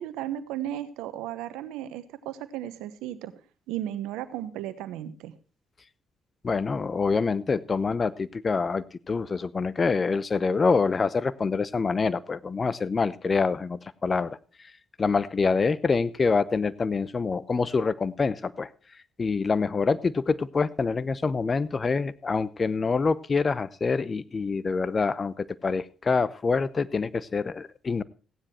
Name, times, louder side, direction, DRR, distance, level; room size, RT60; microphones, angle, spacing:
voice 1, 0.0-3.3 3.7-5.3, right 12 dB, 85° right, 13 dB, 1.0 m, -35 dB
voice 2, 6.4-14.4 15.0-18.7 19.2-28.0, left 4 dB, 40° left, 19 dB, 0.8 m, -26 dB
15.5 x 9.9 x 4.4 m, 0.37 s
hypercardioid pair, 50°, 0 cm